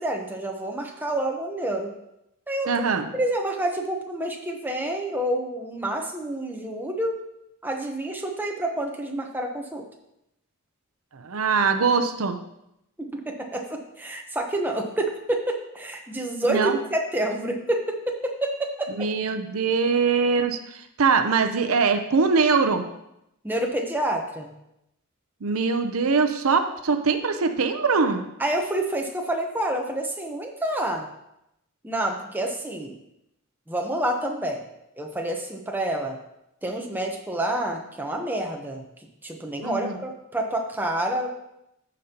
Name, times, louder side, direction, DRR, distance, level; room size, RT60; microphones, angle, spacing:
voice 1, 0.0-1.9 2.5-2.7 3.1-7.1 7.6-9.8 13.0-16.6 16.9-18.0 18.2-18.9 23.4-24.5 28.4-31.1 31.8-32.9 33.7-34.6 35.0-36.2 36.6-38.8 39.2-41.3, right 1 dB, 10° right, 1 dB, 0.8 m, -28 dB
voice 2, 2.7-3.1 11.1-12.4 16.4-16.8 19.0-22.8 25.4-28.3 39.6-40.0, right 5 dB, 80° right, 7 dB, 0.7 m, -22 dB
13.5 x 5.3 x 2.9 m, 0.83 s
head